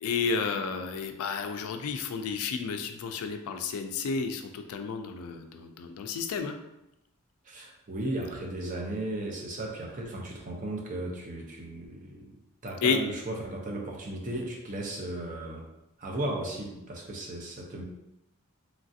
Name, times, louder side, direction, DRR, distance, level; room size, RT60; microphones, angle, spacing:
voice 1, 0.0-6.6 12.8-13.0, left 5 dB, 80° left, 6 dB, 0.3 m, -31 dB
voice 2, 7.4-12.4 12.6-15.6 16.0-17.8, right 1 dB, 35° right, -1 dB, 0.5 m, -35 dB
3.1 x 2.4 x 2.6 m, 0.89 s
head